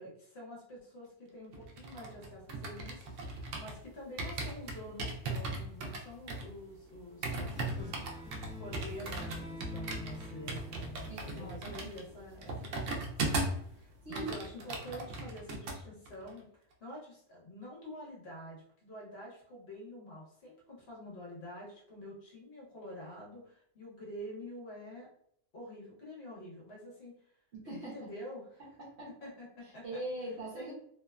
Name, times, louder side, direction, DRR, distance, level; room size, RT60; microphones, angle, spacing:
voice 1, 0.0-8.1 8.6-12.9 13.3-25.1 25.5-27.2 27.8-28.6 29.2-30.0 30.6-30.7, left 1 dB, 60° left, -3 dB, 1.1 m, -47 dB
sound 1, 1.5-3.8 4.2-13.7 13.9-15.8 16.1-16.3, right 2 dB, 85° right, 0.9 m, -38 dB
sound 2, 7.3-12.2, left 2 dB, 10° right, 0.6 m, -47 dB
voice 2, 11.1-11.9 14.0-14.3 27.5-28.1 28.8-29.3 29.6-30.7, right 2 dB, 65° right, -6 dB, 1.0 m, -42 dB
2.8 x 2.1 x 2.3 m, 0.67 s
omnidirectional pair, 1.3 m